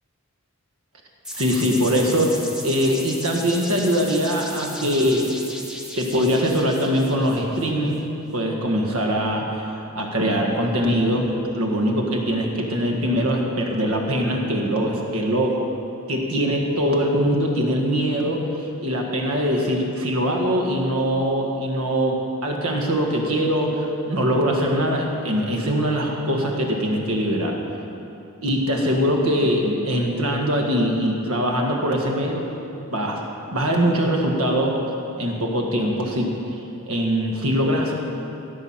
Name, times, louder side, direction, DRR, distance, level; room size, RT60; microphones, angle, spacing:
sound 1, 1.3-8.0, equal, 5° right, 0.9 m, -36 dB
voice 1, 1.4-5.3 6.0-8.0 8.3-15.6 16.1-18.4 18.8-27.6 28.4-32.5 32.9-33.2 33.5-34.8 35.2-36.3 36.9-37.9, equal, 80° right, 1 dB, 1.7 m, -22 dB
16.0 x 7.0 x 5.8 m, 2.8 s
head